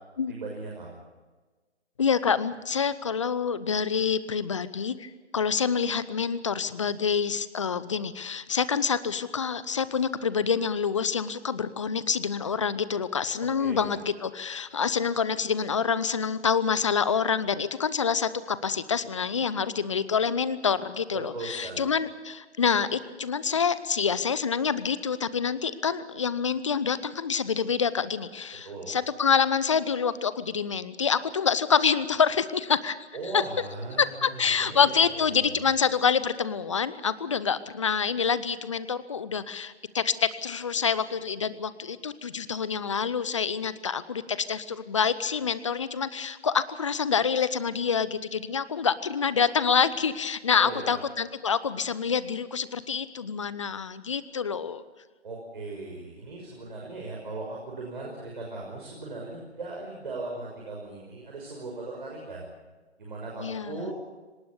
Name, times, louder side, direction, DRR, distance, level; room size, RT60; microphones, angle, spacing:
voice 1, 0.3-1.0 13.6-13.9 21.1-21.9 28.6-29.0 33.1-35.0 35.4-35.7 50.6-51.0 55.2-62.5 63.0-63.9, right 2 dB, 45° right, -2 dB, 6.0 m, -38 dB
voice 2, 2.0-33.0 33.2-33.4 34.0-54.8 63.4-63.9, left 6 dB, 25° left, 16 dB, 0.8 m, -27 dB
25.0 x 19.5 x 7.0 m, 1.3 s
figure-of-eight pair, 145°, 35 cm